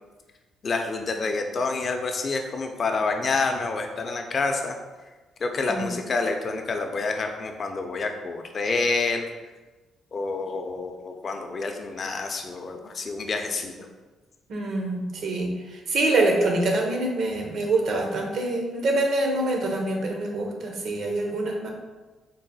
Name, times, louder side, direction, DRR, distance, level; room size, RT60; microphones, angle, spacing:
voice 1, 0.6-4.8 5.4-9.2 10.1-13.9, left 3 dB, 45° left, 4 dB, 0.4 m, -28 dB
voice 2, 14.5-15.5 15.9-21.7, right 2 dB, 65° right, 1 dB, 0.7 m, -25 dB
3.9 x 2.1 x 4.0 m, 1.2 s
cardioid pair, 90°, 0 cm